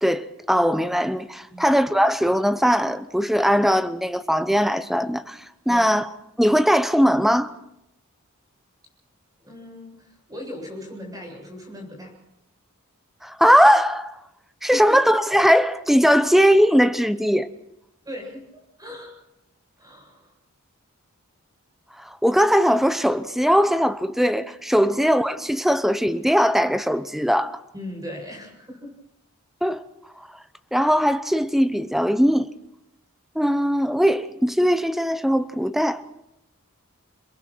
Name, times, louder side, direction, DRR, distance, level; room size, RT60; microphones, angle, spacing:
voice 1, 0.0-5.4 5.7-6.1 6.4-7.5 13.2-14.2 14.6-17.5 22.0-27.6 29.6-29.8 30.7-32.5 33.3-36.0, equal, ahead, 0.9 m, -20 dB
voice 2, 9.4-12.1 14.7-15.0 18.0-19.1 19.8-20.3 27.7-28.9, left 1 dB, 15° right, 7.9 m, -38 dB
29.0 x 22.0 x 4.6 m
head